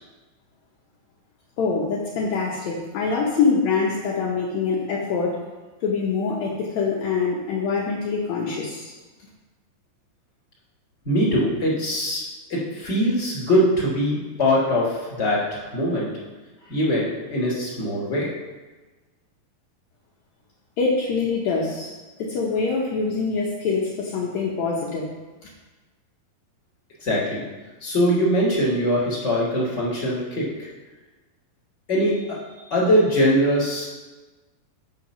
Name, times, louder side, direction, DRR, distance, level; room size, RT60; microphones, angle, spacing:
voice 1, 1.6-5.4 5.8-8.9 20.8-21.9 22.2-25.1, left 4 dB, 75° left, -3 dB, 1.7 m, -24 dB
voice 2, 11.0-12.2 12.5-16.1 16.7-18.3 27.0-27.4 27.8-30.7 31.9-33.8, equal, 20° left, -6 dB, 2.5 m, -22 dB
8.0 x 4.6 x 5.9 m, 1.2 s
omnidirectional pair, 4.3 m